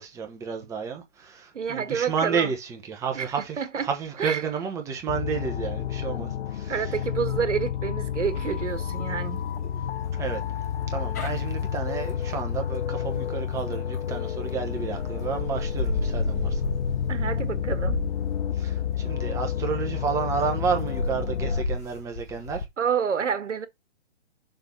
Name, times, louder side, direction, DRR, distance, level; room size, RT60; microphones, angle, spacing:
voice 1, 0.0-6.9 10.2-10.4 10.9-16.6 18.6-18.8 19.0-22.6, right 6 dB, 10° right, 0.9 m, -31 dB
voice 2, 1.5-2.5 3.1-3.9 4.2-4.4 6.7-9.7 17.1-18.0 22.8-23.7, right 7 dB, 75° right, 1.6 m, -29 dB
sound 1, 5.1-21.6, left 9 dB, 55° left, 0.7 m, -30 dB
sound 2, 8.2-14.2 14.7-22.7, left 2 dB, 15° left, 0.5 m, -33 dB
6.8 x 3.5 x 5.8 m
hypercardioid pair, 150°, 37 cm